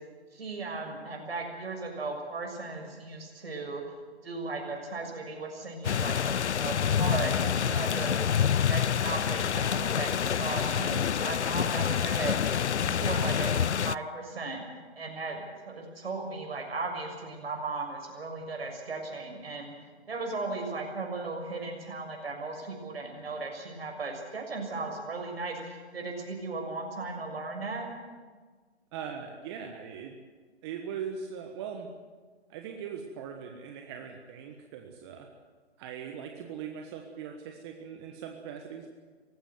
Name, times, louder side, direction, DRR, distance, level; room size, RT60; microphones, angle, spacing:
voice 1, 0.3-3.8 4.2-8.3 8.6-14.6 15.0-19.7 20.1-27.9, right 3 dB, 65° right, 2 dB, 6.7 m, -36 dB
sound 1, 5.8-14.0, left 8 dB, 85° left, 0.5 m, -27 dB
voice 2, 28.9-30.1 30.6-31.9 32.5-35.3 35.8-38.9, right 7 dB, 25° right, 3 dB, 1.5 m, -40 dB
19.0 x 16.0 x 9.5 m, 1.5 s
figure-of-eight pair, 145°, 33 cm